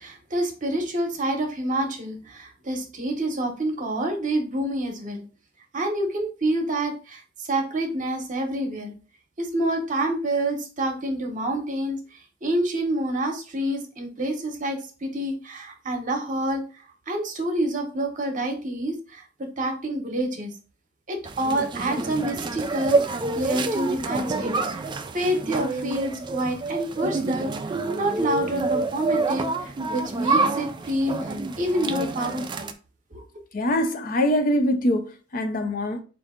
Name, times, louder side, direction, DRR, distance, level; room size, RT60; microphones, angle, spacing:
voice 1, 0.0-5.2 5.7-7.2 7.5-8.9 9.4-12.0 12.4-16.6 17.1-18.9 19.6-20.5 21.1-24.5 25.1-27.5 28.0-29.5 29.9-32.7, right 1 dB, 40° right, 0.9 m, -27 dB
sound 1, 21.2-32.7, right 3 dB, 20° right, 0.3 m, -28 dB
voice 2, 33.5-36.0, left 1 dB, 45° left, 0.5 m, -23 dB
4.6 x 2.6 x 3.6 m
head